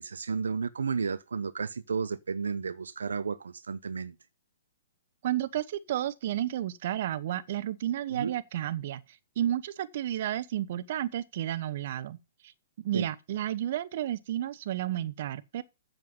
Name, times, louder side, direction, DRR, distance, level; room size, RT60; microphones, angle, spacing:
voice 1, 0.0-4.1 8.2-8.3 12.9-13.1, right 5 dB, 85° right, 0.7 m, -32 dB
voice 2, 5.2-9.0 9.4-12.2 12.8-15.6, right 12 dB, 55° right, 0.9 m, -32 dB
7.7 x 7.7 x 5.4 m
hypercardioid pair, 135°, 0 cm